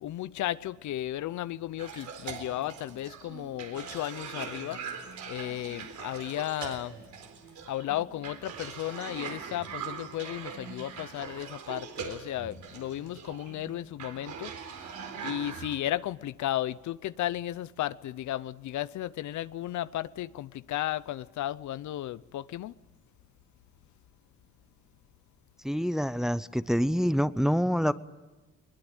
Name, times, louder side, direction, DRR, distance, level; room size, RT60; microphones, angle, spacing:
voice 1, 0.0-4.8 5.3-7.0 7.7-14.9 15.2-22.7, left 13 dB, 70° left, 0.7 m, -34 dB
Cough, 1.8-15.8, right 6 dB, 70° right, 4.0 m, -42 dB
voice 2, 25.6-27.9, equal, ahead, 0.7 m, -26 dB
21.5 x 21.0 x 9.1 m
cardioid pair, 90°, 30 cm